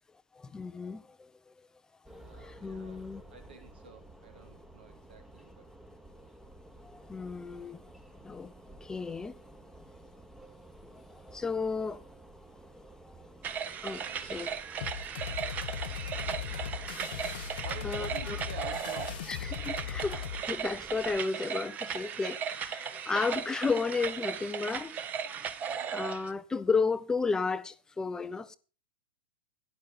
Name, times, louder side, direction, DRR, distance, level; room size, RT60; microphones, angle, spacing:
voice 1, 0.3-1.5 2.4-3.2 6.8-7.8 8.2-8.5 8.8-9.4 10.9-12.0 13.8-14.5 17.8-18.4 19.3-25.0 25.9-28.6, left 4 dB, 10° left, 0.5 m, -33 dB
sound 1, 2.1-21.2, right 1 dB, 5° right, 1.1 m, -53 dB
voice 2, 2.1-3.0 3.3-5.6 14.0-14.3 17.6-19.4 22.7-23.3 25.7-26.0, right 5 dB, 75° right, 2.7 m, -50 dB
sound 2, 13.4-26.3, right 7 dB, 30° right, 1.0 m, -37 dB
sound 3, 14.8-20.4, left 9 dB, 65° left, 0.6 m, -38 dB
12.0 x 10.0 x 4.1 m
hypercardioid pair, 105°, 6 cm